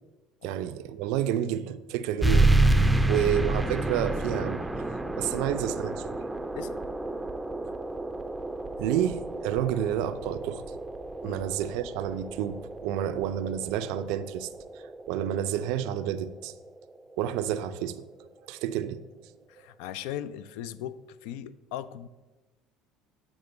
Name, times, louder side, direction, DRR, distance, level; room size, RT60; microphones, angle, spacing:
voice 1, 0.4-2.5 3.0-4.6 5.2-6.2 8.8-10.6 11.2-14.5 14.7-16.5 17.2-18.1 18.5-19.0, right 10 dB, 75° right, 12 dB, 0.3 m, -30 dB
sound 1, 2.2-17.3, right 2 dB, 10° right, 0.4 m, -29 dB
voice 2, 19.5-22.1, left 11 dB, 80° left, 15 dB, 0.3 m, -38 dB
8.0 x 3.6 x 5.2 m, 1.1 s
hypercardioid pair, 80°, 0 cm